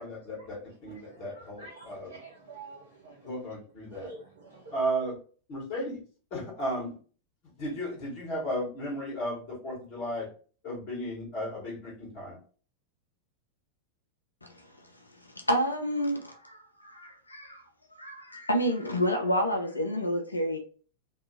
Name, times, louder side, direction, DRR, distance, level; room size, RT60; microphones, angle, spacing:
voice 1, 0.0-2.2 3.2-4.1 4.7-5.2 5.5-6.0 6.3-7.0 7.6-10.3 10.6-12.4, equal, 45° left, -3 dB, 1.4 m, -34 dB
voice 2, 1.1-3.2 3.9-4.7, right 3 dB, 65° right, -3 dB, 0.6 m, -48 dB
voice 3, 15.5-17.6 18.0-20.6, equal, 80° left, 4 dB, 0.4 m, -29 dB
2.6 x 2.4 x 2.7 m, 0.40 s
figure-of-eight pair, 90°, 0 cm